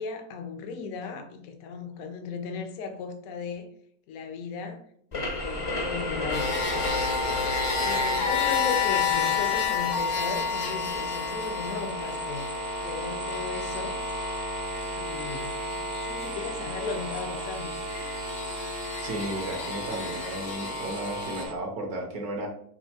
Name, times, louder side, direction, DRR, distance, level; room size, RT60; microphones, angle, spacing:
voice 1, 0.0-3.7 4.1-4.8 5.1-6.8 7.8-12.4 12.8-14.0 14.9-17.8, left 4 dB, 70° left, 1.0 m, -36 dB
sound 1, 5.1-14.5, left 3 dB, 40° left, 0.5 m, -34 dB
sound 2, 5.4-21.5, right 1 dB, 90° right, 0.4 m, -37 dB
sound 3, 6.3-21.5, left 5 dB, 90° left, 1.4 m, -31 dB
voice 2, 19.0-22.5, right 1 dB, 70° right, 1.4 m, -34 dB
5.4 x 2.5 x 2.8 m
omnidirectional pair, 1.7 m